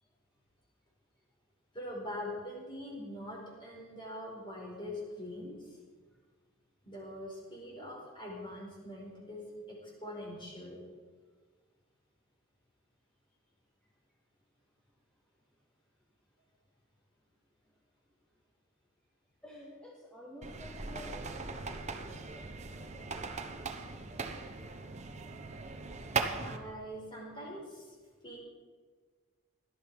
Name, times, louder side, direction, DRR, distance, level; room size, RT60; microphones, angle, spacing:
voice 1, 1.7-5.8 6.8-10.8 26.3-27.9 28.2-28.4, left 1 dB, 25° left, -2 dB, 4.5 m, -43 dB
voice 2, 19.4-23.0, left 1 dB, 5° left, -4 dB, 1.9 m, -51 dB
sound 1, 20.4-26.6, right 4 dB, 35° right, 1.0 m, -39 dB
17.5 x 12.0 x 4.8 m, 1.5 s
head